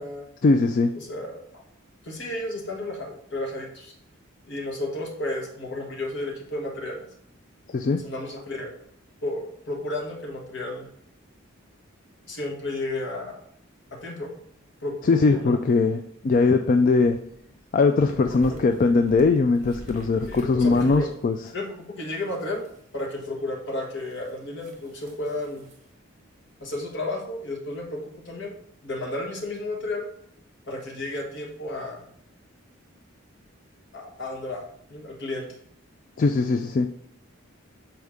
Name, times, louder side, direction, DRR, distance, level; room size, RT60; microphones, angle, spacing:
voice 1, 0.4-0.9 7.7-8.0 15.1-17.2 17.7-21.4 36.2-36.9, left 3 dB, 40° left, 6 dB, 0.3 m, -20 dB
voice 2, 0.9-1.6 2.0-3.9 4.5-7.1 8.0-8.7 9.2-10.9 12.3-13.4 13.9-14.4 14.8-15.0 15.3-15.5 18.1-18.6 20.3-21.1 21.5-22.7 22.9-25.7 26.6-28.5 28.8-30.1 30.7-32.1 33.9-34.6 34.9-35.5, left 2 dB, 60° left, 0 dB, 1.4 m, -32 dB
sound 1, 16.9-21.2 21.5-21.6 22.4-23.0 24.1-24.3 24.6-25.8, right 1 dB, 35° right, 1.3 m, -43 dB
6.5 x 4.5 x 3.5 m, 0.70 s
head